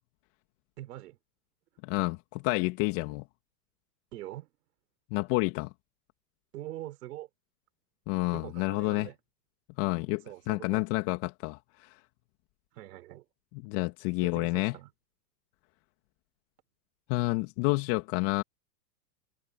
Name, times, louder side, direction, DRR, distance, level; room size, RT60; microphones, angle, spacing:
voice 1, 0.8-1.2 4.1-4.5 6.5-7.3 8.3-9.2 10.2-10.8 12.7-13.2 14.2-14.9, right 15 dB, 70° right, 4.9 m, -43 dB
voice 2, 1.8-3.2 5.1-5.7 8.1-9.1 9.8-11.9 13.6-14.8 17.1-18.4, left 25 dB, 50° left, 2.4 m, -29 dB
hypercardioid pair, 120°, 48 cm